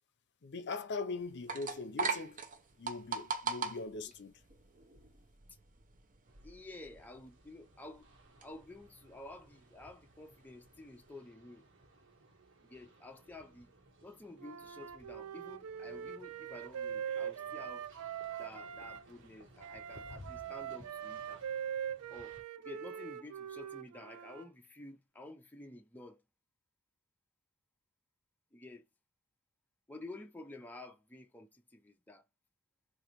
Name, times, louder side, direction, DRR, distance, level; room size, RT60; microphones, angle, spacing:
voice 1, 0.4-2.4 2.8-4.4, left 3 dB, 50° left, 0.6 m, -41 dB
sound 1, 1.2-11.1, right 5 dB, 35° right, 0.7 m, -42 dB
sound 2, 6.2-22.4, right 1 dB, 55° right, 1.4 m, -60 dB
voice 2, 6.4-8.1 8.4-11.6 12.6-13.7 14.0-17.9 18.4-21.5 22.1-26.2 28.5-28.9 29.9-32.2, left 2 dB, 10° left, 0.4 m, -51 dB
Wind instrument woodwind instrument, 14.4-19.0 19.6-24.5, right 8 dB, 85° right, 0.4 m, -42 dB
3.9 x 2.5 x 2.9 m
head